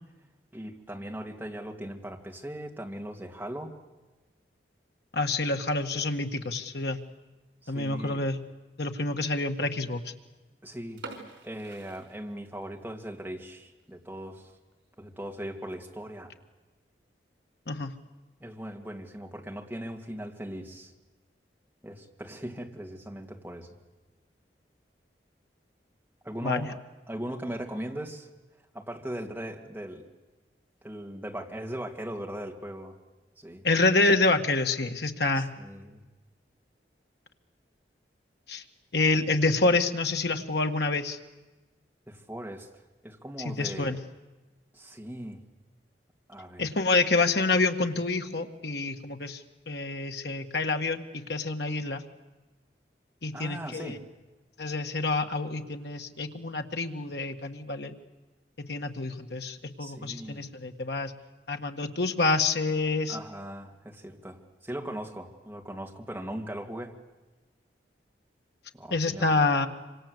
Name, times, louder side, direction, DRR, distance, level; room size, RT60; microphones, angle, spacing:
voice 1, 0.5-3.7 7.6-8.2 10.6-11.1 11.4-14.5 15.0-16.3 18.4-20.9 21.8-23.7 26.2-26.8 27.1-28.3 28.7-30.1 30.8-33.0 33.4-33.6 35.3-36.0 42.1-44.0 44.7-45.4 46.3-46.7 53.3-54.1 59.8-60.5 63.1-66.9 68.7-69.3, right 1 dB, 10° right, 1 dB, 2.6 m, -39 dB
voice 2, 5.1-7.0 7.7-8.4 8.8-10.0 17.7-17.9 26.4-26.7 33.6-35.5 38.5-38.6 38.9-41.2 43.5-44.0 46.6-52.0 53.2-54.0 54.6-57.9 58.6-61.1 61.5-63.2 68.9-69.7, left 3 dB, 65° left, 5 dB, 1.8 m, -27 dB
sound 1, 11.0-12.8 13.1-13.2 13.8-14.0 14.4-14.5 14.7-14.8 15.6-15.9, right 3 dB, 85° right, 5.3 m, -46 dB
26.5 x 26.0 x 8.1 m, 1.2 s
head